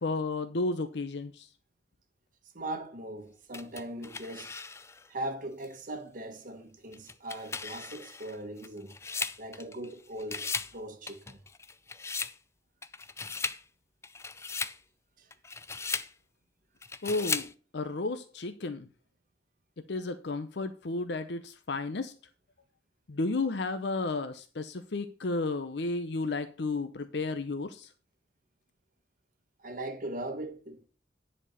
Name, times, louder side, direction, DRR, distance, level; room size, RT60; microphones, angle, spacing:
voice 1, 0.0-1.5 17.0-18.9 19.9-22.1 23.1-27.9, left 3 dB, 70° left, 0.7 m, -33 dB
voice 2, 2.5-4.6 5.1-9.0 9.4-10.5 10.7-11.4 15.2-15.3 29.6-30.9, right 1 dB, 50° right, 1.4 m, -39 dB
sound 1, 3.5-5.1 5.6-5.7 6.9-9.9 10.2-10.8 11.1-12.4 12.8-13.6 14.0-14.8 15.3-16.1 16.8-17.5, left 4 dB, 15° left, 0.4 m, -37 dB
10.0 x 4.4 x 6.6 m
head